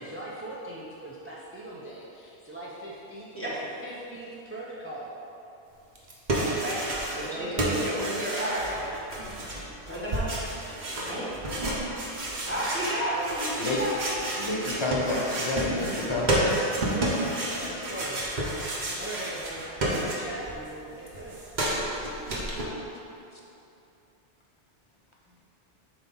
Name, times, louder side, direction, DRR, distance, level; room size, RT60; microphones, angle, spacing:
voice 1, 0.0-3.5 3.8-5.1 7.1-8.0 8.8-9.0 15.7-17.1 17.4-18.3 18.6-19.6 19.9-21.4, right 1 dB, 15° right, -6 dB, 0.6 m, -41 dB
sound 1, 6.0-7.3 7.6-20.5 20.8-22.7, right 1 dB, 45° right, 1.0 m, -30 dB
voice 2, 6.4-6.8 7.1-8.7 9.9-10.3 11.0-11.3 12.5-14.0, right 1 dB, 10° left, -8 dB, 1.2 m, -32 dB
voice 3, 14.4-16.5, left 2 dB, 30° left, -3 dB, 0.7 m, -29 dB
7.3 x 2.9 x 5.5 m, 2.8 s
omnidirectional pair, 1.1 m